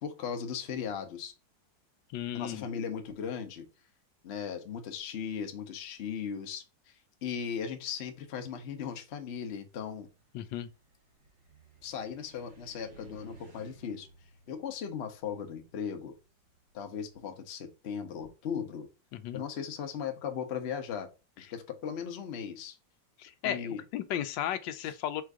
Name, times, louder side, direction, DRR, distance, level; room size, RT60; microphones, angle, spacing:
voice 1, 0.0-1.3 2.3-3.7 4.2-6.6 7.2-10.1 11.8-14.1 14.5-16.2 16.7-18.9 19.3-21.1 21.4-22.8 23.4-23.8 24.8-24.9, left 7 dB, 55° left, 0.7 m, -37 dB
voice 2, 2.1-2.7 10.3-10.7 19.1-19.4 23.2-25.2, left 11 dB, 85° left, 1.3 m, -35 dB
Car, 9.1-17.3, right 3 dB, 80° right, 2.2 m, -58 dB
4.4 x 2.5 x 4.6 m
omnidirectional pair, 2.0 m